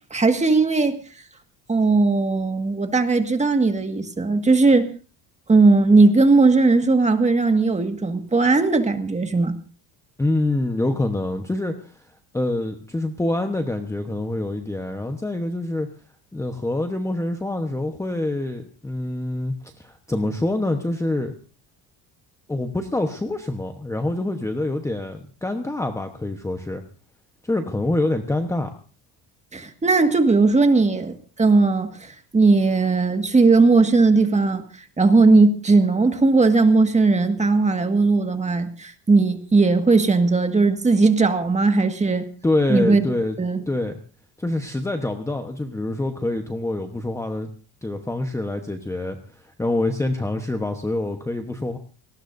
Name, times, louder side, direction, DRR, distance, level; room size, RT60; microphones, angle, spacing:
voice 1, 0.1-1.0 1.7-4.9 5.5-9.5 29.5-34.6 35.0-42.3 42.7-43.0 43.4-43.6, right 3 dB, 15° right, 7 dB, 1.8 m, -18 dB
voice 2, 10.2-12.0 12.3-15.9 16.3-21.3 22.5-26.8 27.4-28.7 42.4-43.4 43.7-44.0 44.4-47.5 47.8-51.8, left 2 dB, 5° left, 5 dB, 1.1 m, -26 dB
25.0 x 19.0 x 2.7 m, 0.38 s
cardioid pair, 120°, 41 cm